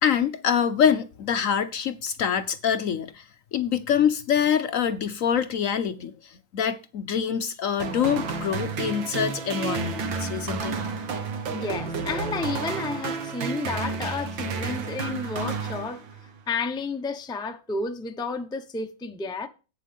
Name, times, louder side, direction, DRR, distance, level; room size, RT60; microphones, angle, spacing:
voice 1, 0.0-10.7, left 8 dB, 65° left, 0.8 m, -25 dB
sound 1, 7.8-16.4, right 5 dB, 85° right, 2.1 m, -31 dB
voice 2, 11.5-16.0 16.5-19.5, left 4 dB, 5° left, 0.3 m, -31 dB
11.5 x 9.1 x 3.5 m
omnidirectional pair, 2.0 m